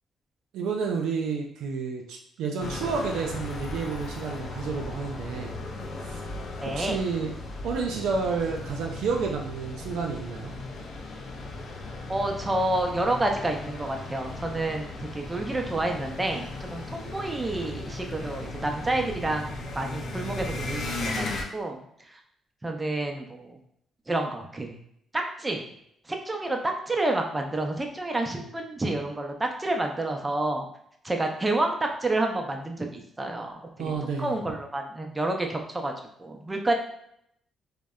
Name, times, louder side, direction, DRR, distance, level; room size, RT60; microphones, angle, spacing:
voice 1, 0.5-5.6 6.0-6.3 6.7-7.3 7.6-10.5 33.8-34.3, right 5 dB, 85° right, 1 dB, 0.3 m, -30 dB
sound 1, 2.6-21.4, left 2 dB, 60° left, 0.4 m, -36 dB
voice 2, 6.6-7.0 12.1-21.8 22.1-22.2 22.6-23.6 24.1-24.8 25.1-25.6 26.1-30.7 31.0-33.9 34.2-35.9 36.2-36.7, right 2 dB, 20° right, 3 dB, 0.4 m, -29 dB
2.6 x 2.1 x 2.3 m, 0.72 s
cardioid pair, 90°, 0 cm